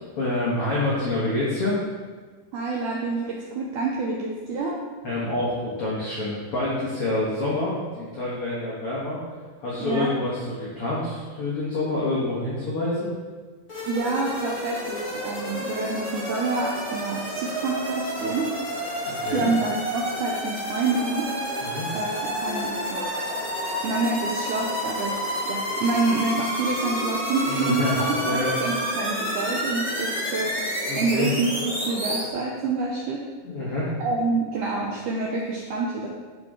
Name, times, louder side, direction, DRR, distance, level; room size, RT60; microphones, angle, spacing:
voice 1, 0.0-1.8 5.0-9.2 9.6-13.1 19.0-19.5 21.6-21.9 27.5-28.5 30.9-31.3 33.4-33.9, left 2 dB, 60° left, -7 dB, 1.5 m, -27 dB
voice 2, 2.5-4.8 9.8-10.1 13.9-18.6 19.3-21.4 21.9-23.1 23.4-23.5 23.8-33.2 34.0-36.1, right 3 dB, 90° right, -1 dB, 1.8 m, -27 dB
sound 1, 13.7-32.2, equal, 30° left, 1.4 m, -30 dB
sound 2, 14.0-32.3, left 2 dB, 90° left, 3.0 m, -38 dB
10.5 x 4.9 x 3.6 m, 1.5 s
omnidirectional pair, 4.4 m